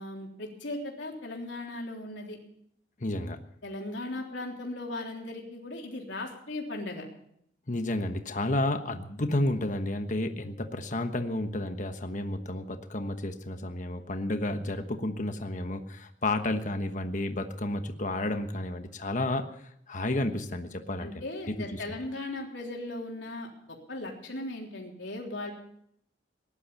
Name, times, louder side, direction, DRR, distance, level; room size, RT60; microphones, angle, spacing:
voice 1, 0.0-2.4 3.6-7.1 21.0-25.5, left 2 dB, 90° left, 0 dB, 3.5 m, -37 dB
voice 2, 3.0-3.4 7.7-19.5 19.9-22.0, left 1 dB, 45° left, 6 dB, 1.2 m, -31 dB
18.0 x 11.0 x 7.0 m, 0.72 s
head